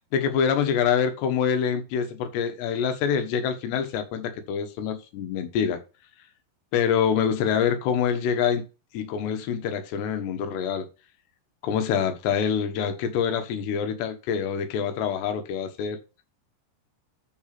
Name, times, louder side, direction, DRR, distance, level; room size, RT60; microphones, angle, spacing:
voice 1, 0.1-5.8 6.7-8.6 8.9-10.9 11.6-16.0, left 7 dB, 70° left, 3.2 m, -25 dB
8.8 x 5.6 x 5.9 m
omnidirectional pair, 5.5 m